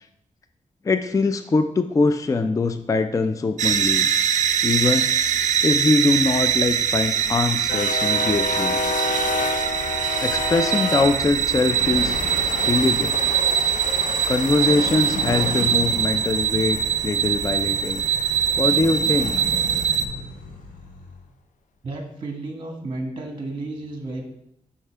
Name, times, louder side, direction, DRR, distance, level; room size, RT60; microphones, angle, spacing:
voice 1, 0.8-4.1 4.6-5.1 5.6-8.8 9.9-12.2 12.6-13.2 14.3-18.1 18.6-19.3, left 3 dB, 25° left, 9 dB, 0.3 m, -22 dB
sound 1, 3.6-20.1, right 8 dB, 60° right, 0.5 m, -23 dB
sound 2, 6.4-18.6, left 4 dB, 70° left, 0.6 m, -30 dB
sound 3, 14.6-17.7 18.6-21.3, left 2 dB, 85° left, 1.1 m, -36 dB
voice 2, 21.8-24.2, right 2 dB, 35° right, 3 dB, 1.3 m, -32 dB
7.8 x 5.6 x 3.3 m, 0.78 s
wide cardioid pair, 115°, 14 cm